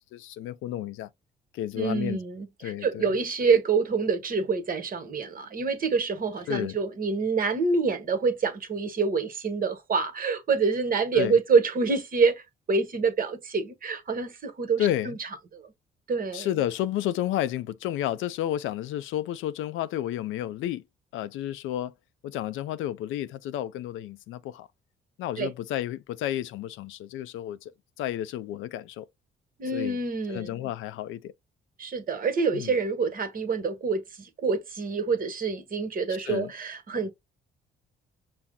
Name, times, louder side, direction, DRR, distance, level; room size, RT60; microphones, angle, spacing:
voice 1, 0.1-1.1 1.5-2.2 2.6-3.1 6.5-6.8 11.1-11.3 14.8-15.2 16.3-20.8 21.1-21.9 22.2-24.7 25.2-27.7 28.0-29.1 29.7-30.0 30.3-31.3 32.5-32.7 36.2-36.5, left 12 dB, 85° left, 0.4 m, -31 dB
voice 2, 1.7-12.4 12.7-15.3 15.5-15.7 16.1-16.5 25.4-25.5 29.6-30.6 31.8-37.1, right 4 dB, 45° right, 1.1 m, -26 dB
5.8 x 2.0 x 3.7 m
cardioid pair, 90°, 20 cm